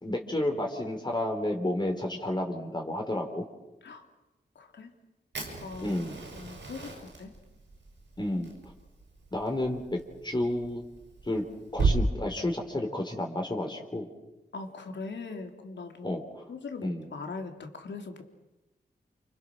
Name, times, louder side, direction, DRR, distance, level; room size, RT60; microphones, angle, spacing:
voice 1, 0.0-3.4 5.8-6.2 8.2-8.5 9.3-10.8 11.3-11.4 11.7-14.1 16.0-16.4 16.8-17.1, left 1 dB, 25° left, 2 dB, 3.8 m, -31 dB
voice 2, 4.6-4.9 5.6-6.0 6.3-7.3 14.5-16.2 16.5-18.2, left 4 dB, 85° left, 4 dB, 3.4 m, -40 dB
Fire, 5.3-12.0, right 4 dB, 90° right, 6.6 m, -35 dB
29.5 x 28.0 x 6.4 m, 1.0 s
wide cardioid pair, 85°, 18 cm